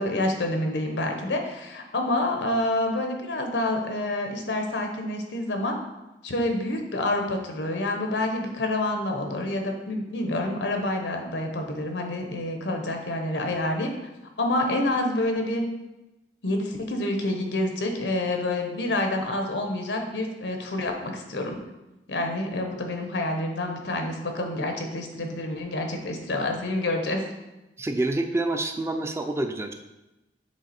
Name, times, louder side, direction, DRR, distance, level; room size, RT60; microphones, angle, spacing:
voice 1, 0.0-5.8 6.2-13.9 14.4-15.7 16.4-21.6 22.1-27.2, left 1 dB, 85° left, 4 dB, 0.9 m, -28 dB
voice 2, 27.8-29.7, right 2 dB, 15° right, 5 dB, 0.4 m, -27 dB
7.3 x 3.3 x 4.2 m, 1.0 s
head